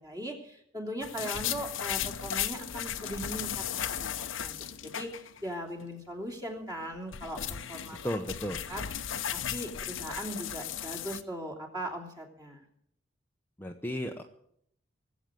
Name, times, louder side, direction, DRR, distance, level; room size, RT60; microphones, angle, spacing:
voice 1, 0.0-8.0 8.7-8.8 9.3-12.6, equal, 20° right, 1 dB, 3.0 m, -39 dB
sound 1, 1.0-5.5 5.8-5.9 6.8-11.2, left 9 dB, 75° left, 0.9 m, -36 dB
voice 2, 8.0-8.6 13.6-14.2, equal, 10° left, 3 dB, 0.8 m, -34 dB
19.5 x 8.0 x 9.0 m, 0.71 s
head